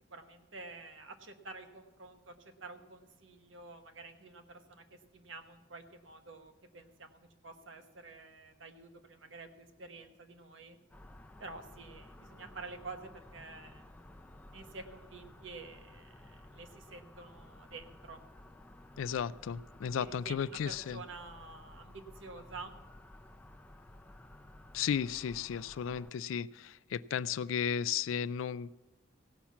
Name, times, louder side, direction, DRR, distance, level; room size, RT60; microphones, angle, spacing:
voice 1, 0.1-4.8 5.1-10.8 11.4-13.9 14.5-18.2 20.0-22.7, right 3 dB, 75° right, 1.1 m, -49 dB
sound 1, 10.9-26.1, left 1 dB, 10° left, 0.5 m, -54 dB
voice 2, 19.0-21.0 24.7-28.8, left 8 dB, 90° left, 0.4 m, -34 dB
16.5 x 5.8 x 7.3 m
head